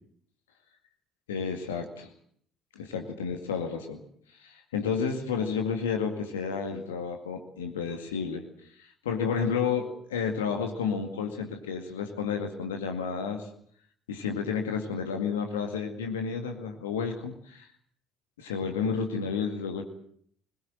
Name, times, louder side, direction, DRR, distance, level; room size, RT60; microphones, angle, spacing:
voice 1, 1.3-2.1 2.8-4.0 4.4-8.4 8.8-13.5 14.1-17.7 18.4-19.8, left 6 dB, 75° left, 4 dB, 2.1 m, -31 dB
22.0 x 21.0 x 7.7 m, 0.63 s
figure-of-eight pair, 50°, 0 cm